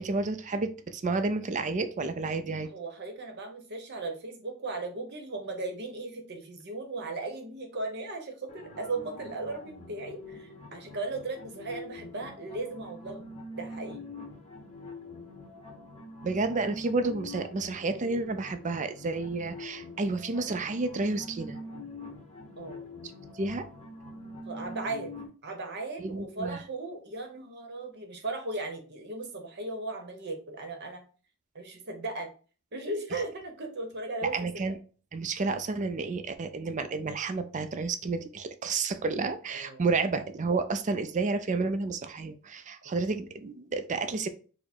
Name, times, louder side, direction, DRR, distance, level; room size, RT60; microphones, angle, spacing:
voice 1, 0.0-2.7 16.2-21.6 23.3-23.7 26.0-26.6 34.3-34.8 35.1-44.3, right 3 dB, 35° right, 9 dB, 0.4 m, -30 dB
voice 2, 2.7-13.2 13.6-14.0 22.6-22.9 24.4-25.2 25.4-31.0 31.5-32.3 32.7-34.5 39.5-39.8 42.8-42.9, right 2 dB, 50° right, 4 dB, 1.0 m, -37 dB
sound 1, 8.5-25.3, left 1 dB, 30° left, 1.0 m, -44 dB
4.5 x 2.2 x 4.3 m, 0.38 s
head